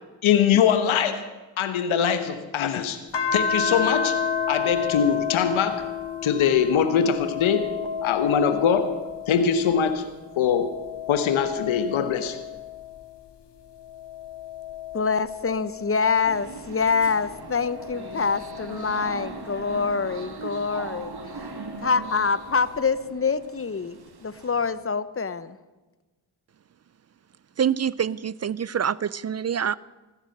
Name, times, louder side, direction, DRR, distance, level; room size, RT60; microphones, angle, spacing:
voice 1, 0.2-1.2 1.6-3.0 3.3-4.2 4.5-5.9 6.2-7.7 8.0-9.0 9.3-10.1 10.4-10.7 11.1-12.4, left 7 dB, 80° left, 9 dB, 1.1 m, -22 dB
sound 1, 3.1-9.9 10.3-13.2 13.8-16.6 17.3-19.8 21.1-22.2, left 7 dB, 60° left, 1.8 m, -32 dB
voice 2, 14.9-21.2 21.8-25.6, left 5 dB, 30° left, 16 dB, 0.9 m, -25 dB
sound 2, 16.2-24.7, right 4 dB, 50° right, 1.8 m, -40 dB
voice 3, 27.6-29.8, right 8 dB, 35° right, 22 dB, 0.4 m, -26 dB
15.0 x 9.9 x 7.8 m, 1.2 s
supercardioid pair, 45°, 47 cm